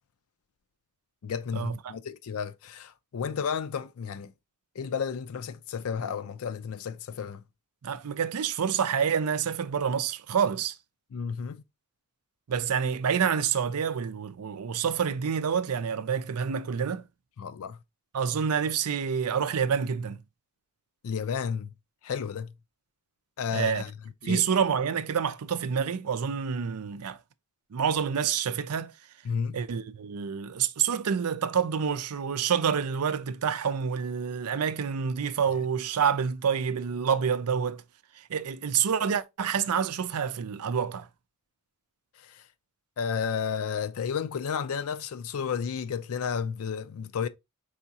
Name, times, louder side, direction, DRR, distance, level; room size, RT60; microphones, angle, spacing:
voice 1, 1.2-4.3 4.8-7.4 11.1-11.6 17.4-17.8 21.0-21.7 22.0-22.5 23.4-23.9 24.2-24.4 29.2-29.6 42.2-42.4 43.0-47.3, left 6 dB, 65° left, 0.4 m, -32 dB
voice 2, 7.8-10.8 12.5-17.1 18.1-20.2 23.5-23.8 24.2-27.2 27.7-28.9 29.5-37.8 38.3-41.1, right 7 dB, 90° right, 0.5 m, -28 dB
4.9 x 3.5 x 2.8 m
head